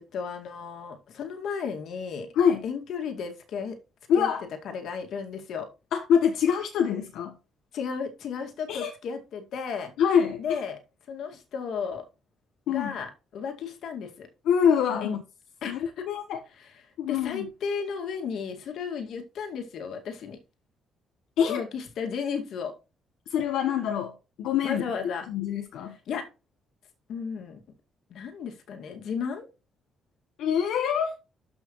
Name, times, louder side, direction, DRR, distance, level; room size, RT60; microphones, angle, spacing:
voice 1, 0.0-2.3 2.6-3.8 4.2-4.3 4.6-5.7 7.7-9.9 10.4-10.8 11.1-12.1 12.7-14.3 15.0-15.2 15.6-16.1 16.5-20.4 21.5-22.8 24.6-25.3 25.9-26.3 27.1-27.6 28.1-29.5, left 6 dB, 70° left, 2.1 m, -34 dB
voice 2, 4.1-4.4 5.9-7.4 8.7-8.9 10.0-10.6 12.7-12.9 14.5-15.2 15.7-15.8 16.1-16.4 17.0-17.5 21.4-21.6 23.3-24.8 25.3-26.0 30.4-31.2, left 8 dB, 85° left, 1.1 m, -25 dB
13.0 x 5.7 x 3.1 m
cardioid pair, 90°, 0 cm